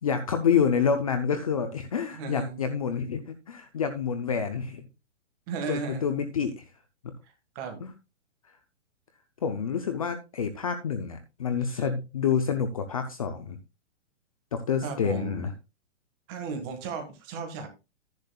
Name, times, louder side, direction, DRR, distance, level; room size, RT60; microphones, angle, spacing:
voice 1, 0.0-4.9 5.7-6.6 7.8-7.9 9.4-13.6 14.5-15.5, left 7 dB, 30° left, 9 dB, 0.6 m, -28 dB
voice 2, 2.1-2.6 5.5-6.0 7.5-7.8 11.7-11.8 14.8-15.4 16.3-17.7, right 5 dB, 20° right, 4 dB, 1.6 m, -35 dB
11.5 x 10.5 x 2.3 m, 0.27 s
hypercardioid pair, 175°, 36 cm